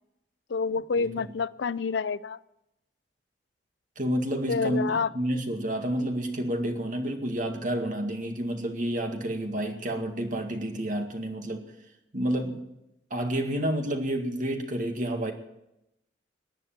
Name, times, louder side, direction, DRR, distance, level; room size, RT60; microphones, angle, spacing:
voice 1, 0.5-2.4 4.5-5.1, left 5 dB, 75° left, 18 dB, 0.5 m, -28 dB
voice 2, 4.0-11.6 12.1-12.6 13.1-15.3, right 1 dB, 45° right, 4 dB, 2.0 m, -29 dB
19.0 x 10.0 x 7.5 m, 0.87 s
head